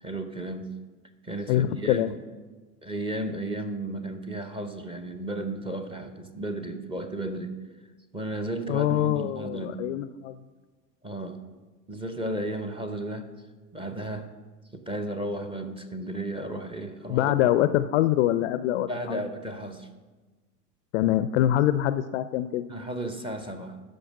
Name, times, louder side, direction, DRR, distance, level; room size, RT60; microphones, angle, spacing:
voice 1, 0.0-0.7 1.2-2.2 2.8-7.6 8.1-9.9 11.0-11.4 11.9-13.3 13.7-14.3 14.7-17.4 18.9-19.9 22.7-23.8, right 1 dB, 10° right, 7 dB, 0.8 m, -34 dB
voice 2, 1.5-2.1 8.7-10.4 17.1-19.2 20.9-22.6, left 13 dB, 50° left, 13 dB, 0.4 m, -24 dB
13.0 x 5.5 x 5.3 m, 1.3 s
hypercardioid pair, 90°, 49 cm